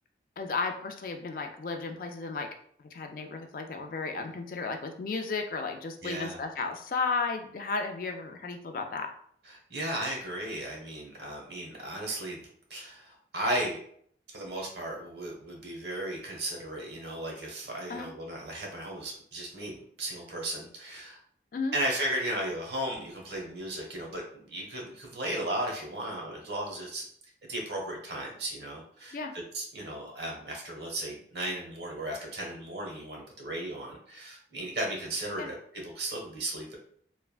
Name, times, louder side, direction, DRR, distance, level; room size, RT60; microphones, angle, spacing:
voice 1, 0.4-2.5 2.9-9.1 17.9-18.1 21.5-21.8 29.1-29.3 35.4-35.5, left 4 dB, 50° left, 5 dB, 0.3 m, -34 dB
voice 2, 6.0-6.4 9.4-12.4 12.7-13.8 14.3-21.2 21.7-27.0 27.5-36.8, right 1 dB, 70° right, -1 dB, 0.9 m, -35 dB
3.2 x 2.1 x 2.4 m, 0.63 s
head